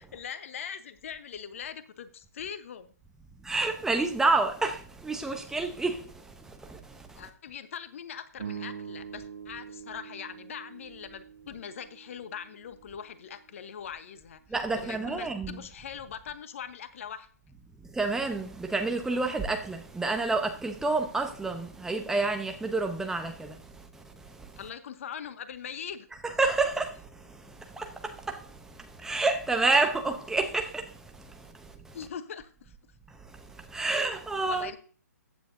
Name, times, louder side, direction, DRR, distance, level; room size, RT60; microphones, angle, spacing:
voice 1, 0.0-2.9 7.2-14.4 14.7-17.3 24.6-26.1 31.9-32.7 34.5-34.8, left 8 dB, 50° left, 1.1 m, -41 dB
voice 2, 3.4-7.2 14.5-15.6 17.8-24.6 26.2-32.0 33.1-34.7, right 3 dB, 5° right, 0.9 m, -30 dB
sound 1, 8.3-12.9, right 7 dB, 60° right, 2.4 m, -44 dB
15.0 x 9.2 x 2.7 m
figure-of-eight pair, 130°, 9 cm